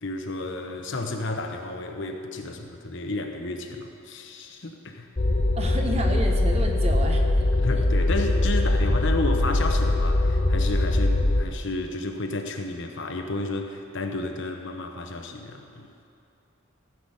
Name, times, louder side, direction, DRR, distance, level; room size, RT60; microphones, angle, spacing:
voice 1, 0.0-5.1 7.6-15.9, left 2 dB, 60° left, 4 dB, 1.0 m, -32 dB
sound 1, 5.2-11.4, left 2 dB, 35° left, 0.7 m, -22 dB
voice 2, 5.5-7.5, right 1 dB, 30° right, 2 dB, 1.1 m, -30 dB
15.5 x 6.0 x 7.9 m, 2.7 s
head